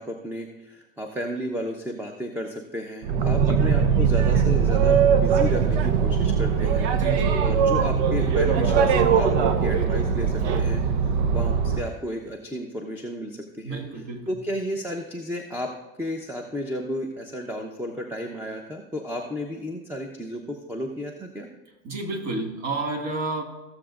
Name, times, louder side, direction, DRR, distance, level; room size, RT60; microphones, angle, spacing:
voice 1, 0.0-6.9 7.4-15.7 16.0-21.5, equal, 5° right, 3 dB, 1.0 m, -33 dB
Boat Water vehicle, 3.0-11.9, right 6 dB, 60° right, 0.9 m, -21 dB
voice 2, 3.4-3.7 6.9-7.4 13.6-14.4 21.8-23.4, right 3 dB, 45° right, 1 dB, 2.4 m, -31 dB
15.5 x 7.1 x 2.6 m, 1.0 s
hypercardioid pair, 95°, 39 cm